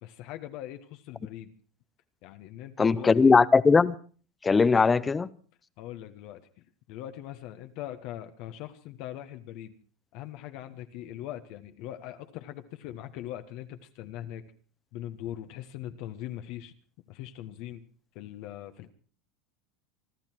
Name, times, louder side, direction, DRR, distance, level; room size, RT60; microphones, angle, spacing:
voice 1, 0.0-1.5 2.2-3.3 5.8-6.5 6.9-9.7 10.1-14.4 14.9-16.7 17.1-17.8 18.1-18.9, left 12 dB, 60° left, 7 dB, 1.3 m, -41 dB
voice 2, 2.8-3.9 4.4-5.3, left 4 dB, 20° left, 18 dB, 0.7 m, -20 dB
25.0 x 12.0 x 4.6 m, 0.42 s
supercardioid pair, 105°, 0 cm